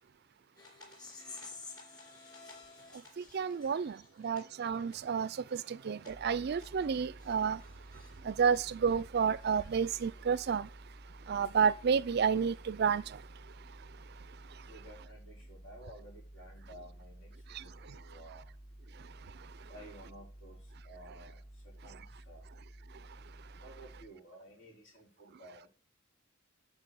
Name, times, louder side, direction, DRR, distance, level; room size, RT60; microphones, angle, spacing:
sound 1, 0.6-8.2 8.6-10.2, left 3 dB, 20° left, 3.4 m, -53 dB
voice 1, 3.3-3.9 4.2-5.3 5.9-7.6 8.3-10.7 11.3-13.0, right 6 dB, 50° right, 0.4 m, -30 dB
sound 2, 6.1-24.1, right 1 dB, 55° left, 3.0 m, -53 dB
voice 2, 14.6-17.6 17.8-18.5 19.7-21.4 21.8-22.5 23.6-25.7, right 1 dB, 70° left, 4.6 m, -54 dB
10.5 x 4.6 x 7.0 m
head